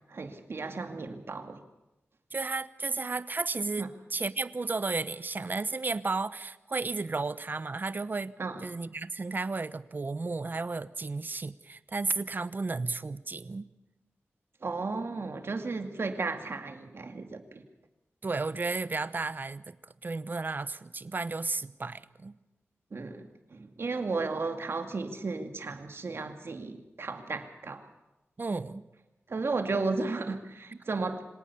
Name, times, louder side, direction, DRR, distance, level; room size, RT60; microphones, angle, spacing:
voice 1, 0.1-1.6 3.8-3.9 8.4-8.7 14.6-17.6 22.9-27.9 29.3-31.2, right 3 dB, 60° right, 6 dB, 2.3 m, -34 dB
voice 2, 2.3-8.3 8.6-13.7 18.2-19.8 20.0-22.4 28.4-28.9 30.7-30.8, right 3 dB, 45° right, 15 dB, 0.9 m, -33 dB
25.0 x 18.0 x 7.0 m, 1.0 s
wide cardioid pair, 90°, 5 cm